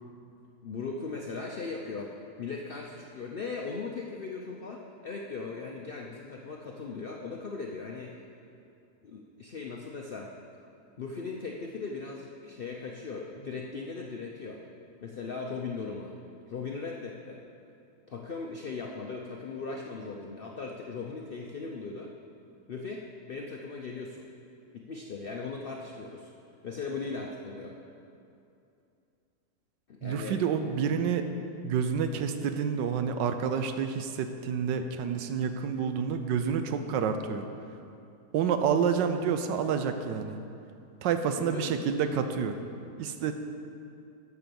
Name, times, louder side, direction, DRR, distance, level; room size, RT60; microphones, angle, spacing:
voice 1, 0.6-8.1 9.0-10.3 11.0-14.6 15.0-16.1 16.5-17.4 18.1-22.1 22.7-24.3 24.7-26.3 26.6-27.8 29.9-30.4 41.4-41.8, left 4 dB, 75° left, 0 dB, 0.5 m, -38 dB
voice 2, 30.0-31.2 31.6-37.5 38.3-40.4 41.0-42.6 43.0-43.3, right 7 dB, 90° right, 8 dB, 1.3 m, -28 dB
9.6 x 6.0 x 6.9 m, 2.6 s
omnidirectional pair, 1.9 m